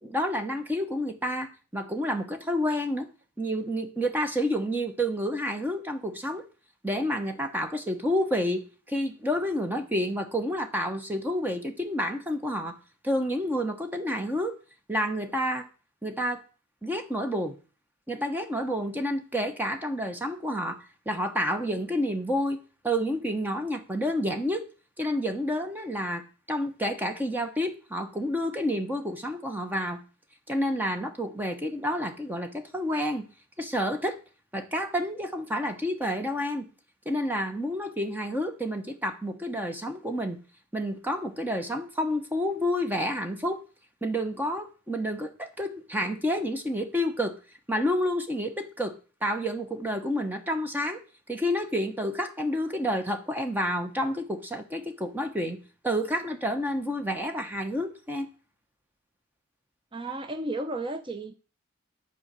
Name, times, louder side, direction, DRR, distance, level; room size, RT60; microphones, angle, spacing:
voice 1, 0.0-3.1 3.4-6.4 6.8-8.6 8.9-12.8 13.0-14.5 14.9-15.7 16.0-16.4 16.8-17.6 18.1-22.6 22.8-24.6 25.0-26.2 26.5-30.0 30.5-33.3 33.6-34.2 34.5-36.7 37.0-40.4 40.7-43.6 44.0-47.4 47.7-49.0 49.2-51.0 51.3-55.6 55.8-58.3, equal, 10° right, 1.1 m, -29 dB
voice 2, 59.9-61.3, right 2 dB, 25° right, 0.6 m, -33 dB
11.0 x 4.6 x 7.5 m
head